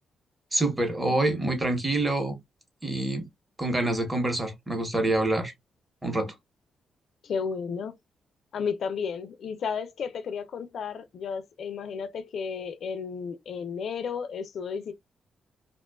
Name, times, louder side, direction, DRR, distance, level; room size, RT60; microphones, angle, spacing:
voice 1, 0.5-2.4 2.8-3.3 3.6-5.5 6.0-6.3, right 2 dB, 15° right, 0.8 m, -26 dB
voice 2, 7.2-8.0 8.5-14.9, left 6 dB, 65° left, 0.3 m, -33 dB
2.5 x 2.2 x 2.2 m
cardioid pair, 100°, 0 cm